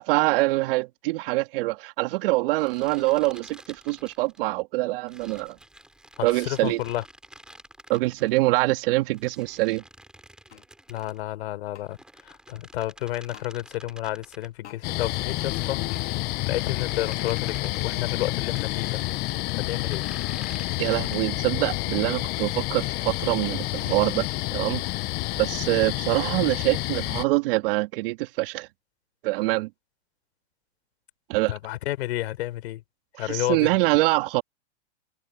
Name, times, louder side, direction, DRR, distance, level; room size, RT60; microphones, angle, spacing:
voice 1, 0.0-5.6 6.2-6.8 7.9-9.8 20.8-24.8 25.4-28.7 29.2-29.7 31.3-31.5 33.2-34.4, right 21 dB, 55° right, 2.5 m, -24 dB
sound 1, 2.6-4.5 5.1-8.4 9.1-11.2 11.9-14.5 15.2-17.9 18.5-21.5, right 1 dB, ahead, 4.7 m, -50 dB
voice 2, 6.2-7.0 10.9-12.0 12.5-15.8 16.4-19.0 19.5-20.0 31.5-32.8 33.2-33.7, left 15 dB, 65° left, 3.8 m, -31 dB
sound 2, 10.5-10.7 11.7-11.9 13.3-13.5 14.6-14.8 15.9-16.1, left 9 dB, 85° left, 2.9 m, -47 dB
sound 3, 14.8-27.2, left 22 dB, 30° left, 0.6 m, -29 dB
hypercardioid pair, 125°, 34 cm